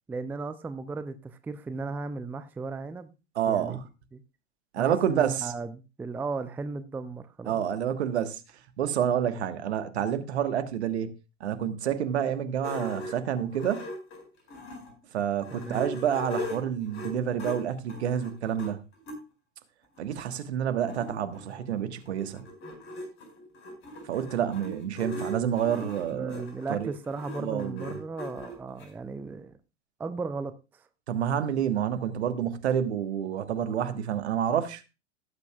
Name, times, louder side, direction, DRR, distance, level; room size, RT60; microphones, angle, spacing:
voice 1, 0.1-3.1 3.5-3.8 4.1-4.2 4.8-7.6 15.5-15.9 26.1-29.6 30.0-30.8, right 3 dB, 5° right, 0.5 m, -36 dB
voice 2, 3.3-3.8 4.7-5.5 7.5-8.4 8.8-11.1 11.4-13.8 15.1-18.8 20.0-22.4 24.0-26.9 27.4-27.9 31.1-34.8, right 9 dB, 60° right, 1.4 m, -28 dB
sound 1, 12.6-14.9 15.3-19.2 20.0-20.1 20.4-20.5 20.6-28.9, left 1 dB, 35° left, 4.7 m, -39 dB
17.5 x 8.3 x 2.3 m
figure-of-eight pair, 90°, 37 cm